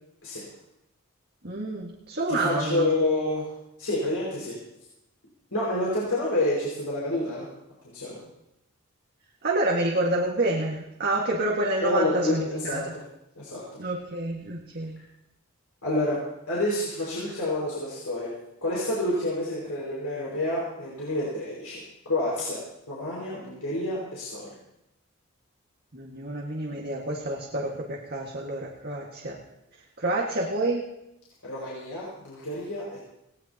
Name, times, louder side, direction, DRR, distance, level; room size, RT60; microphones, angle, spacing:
voice 1, 1.4-2.9 9.4-12.8 13.8-15.0 25.9-29.4 30.0-30.9, right 2 dB, 50° right, -2 dB, 1.9 m, -28 dB
voice 2, 2.3-3.5 3.8-4.6 5.5-7.5 7.9-8.2 11.8-13.0 13.4-13.6 15.8-16.2 16.5-18.3 18.6-24.5 31.4-33.0, left 1 dB, 90° left, -6 dB, 5.6 m, -28 dB
19.5 x 18.5 x 3.0 m, 0.85 s
head